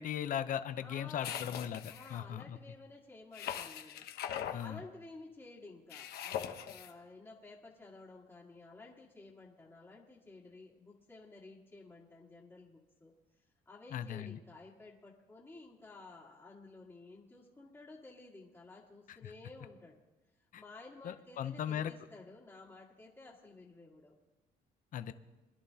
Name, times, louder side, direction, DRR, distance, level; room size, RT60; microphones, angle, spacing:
voice 1, 0.0-2.6 4.5-4.8 13.9-14.4 19.2-19.3 20.5-20.6 21.0-21.9 24.9-25.1, left 9 dB, 50° left, 12 dB, 0.6 m, -38 dB
voice 2, 0.8-4.1 4.6-13.1 13.7-20.0 20.6-24.2, left 3 dB, 10° left, -5 dB, 1.8 m, -53 dB
sound 1, 1.2-2.2 3.3-4.6 5.9-6.9, left 10 dB, 70° left, 1.0 m, -41 dB
23.0 x 11.0 x 2.8 m, 1.1 s
cardioid pair, 110°, 17 cm